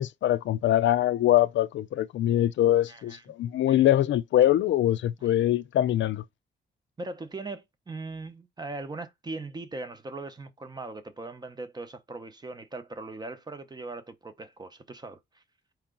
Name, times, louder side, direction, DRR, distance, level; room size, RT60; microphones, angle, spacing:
voice 1, 0.0-6.2, left 12 dB, 85° left, 0.4 m, -23 dB
voice 2, 2.9-3.2 3.7-3.9 7.0-15.4, right 3 dB, 20° right, 0.7 m, -40 dB
4.6 x 2.9 x 3.7 m
wide cardioid pair, 150°, 19 cm